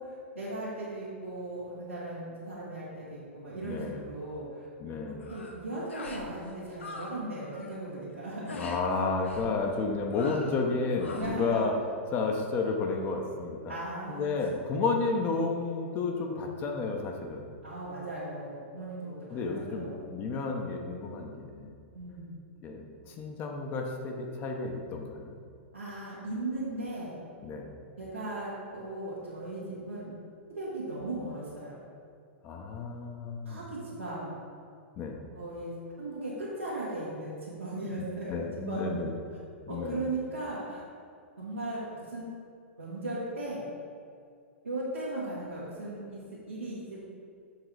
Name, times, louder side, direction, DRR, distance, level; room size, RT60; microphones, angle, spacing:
voice 1, 0.0-4.7 5.0-8.7 11.1-11.8 13.7-14.3 14.8-14.9 17.6-20.1 21.9-22.4 25.7-27.2 28.0-30.1 30.5-31.8 33.4-34.4 35.3-39.2 39.7-40.8 41.4-42.3 42.8-43.6 44.6-46.2 46.5-47.1, right 2 dB, 85° right, -11 dB, 1.6 m, -37 dB
voice 2, 3.6-4.0 4.8-5.3 8.6-11.7 12.1-13.7 14.1-17.5 19.3-21.7 22.6-25.4 27.4-27.7 32.4-33.6 35.0-35.2 38.0-39.1 39.7-40.0, left 4 dB, 30° left, 2 dB, 0.7 m, -32 dB
sound 1, 5.2-5.6 5.9-6.3 6.5-7.1 7.4-7.7 8.5-8.8 9.2-9.5 10.1-10.6 11.0-11.4, left 3 dB, 75° left, 0.8 m, -42 dB
6.6 x 3.8 x 4.6 m, 2.3 s
figure-of-eight pair, 105°, 7 cm